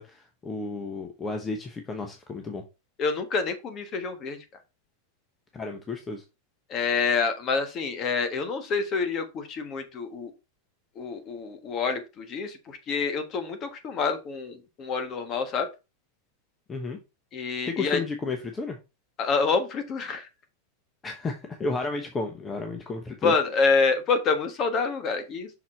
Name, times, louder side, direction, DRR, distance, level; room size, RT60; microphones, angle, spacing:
voice 1, 0.0-2.6 5.5-6.2 16.7-17.0 17.7-18.8 21.0-23.3, left 3 dB, 20° left, 5 dB, 0.9 m, -32 dB
voice 2, 3.0-4.4 6.7-10.3 11.0-15.7 17.3-18.0 19.2-20.3 23.2-25.5, left 4 dB, 35° left, 8 dB, 1.4 m, -27 dB
6.0 x 4.1 x 4.4 m, 0.27 s
supercardioid pair, 130°, 0 cm